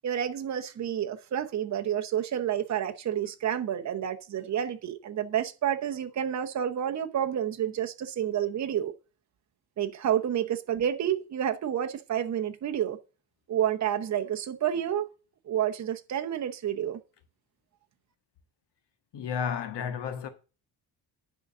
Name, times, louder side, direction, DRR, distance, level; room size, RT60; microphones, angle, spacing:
voice 1, 0.0-8.9 9.8-13.0 13.5-15.1 15.5-17.0, right 10 dB, 40° right, 0.9 m, -29 dB
voice 2, 19.1-20.3, left 7 dB, 75° left, 1.6 m, -32 dB
10.0 x 3.9 x 6.6 m
cardioid pair, 150°, 42 cm